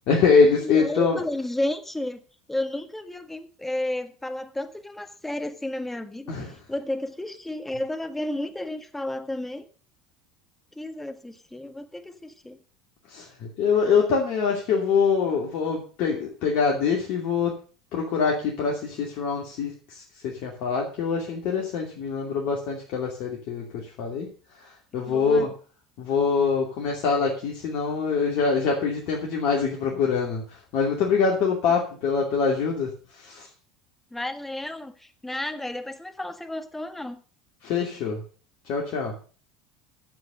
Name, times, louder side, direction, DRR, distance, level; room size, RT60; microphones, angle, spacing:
voice 1, 0.1-1.2 6.3-6.5 13.1-17.5 17.9-23.6 24.0-24.3 24.6-25.5 26.0-33.5 37.6-38.2 38.7-39.1, left 5 dB, 55° left, -1 dB, 2.6 m, -24 dB
voice 2, 0.6-2.2 2.5-6.3 6.7-9.7 10.8-12.6 24.9-25.5 34.1-37.2, left 1 dB, 10° left, 8 dB, 1.6 m, -32 dB
10.5 x 7.2 x 6.6 m, 0.40 s
hypercardioid pair, 70°, 3 cm